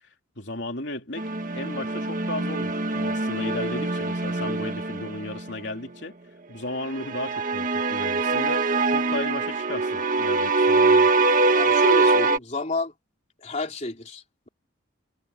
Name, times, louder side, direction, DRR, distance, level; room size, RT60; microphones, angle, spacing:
voice 1, 0.4-6.1 6.5-11.1, left 2 dB, 55° left, 3.3 m, -35 dB
sound 1, 1.2-5.5 6.9-12.4, right 3 dB, 40° right, 1.4 m, -23 dB
voice 2, 11.5-12.9 13.4-14.5, left 3 dB, 35° left, 3.6 m, -31 dB
head